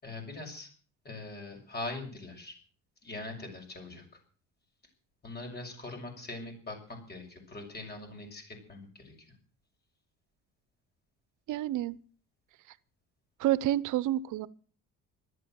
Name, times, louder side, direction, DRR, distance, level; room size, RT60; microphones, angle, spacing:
voice 1, 0.0-0.7 1.1-2.6 3.0-4.0 5.2-9.1, left 2 dB, 30° left, 6.9 m, -42 dB
voice 2, 11.5-12.0 13.4-14.5, right 13 dB, 70° right, 0.9 m, -28 dB
14.0 x 13.0 x 7.8 m
cardioid pair, 145°, 32 cm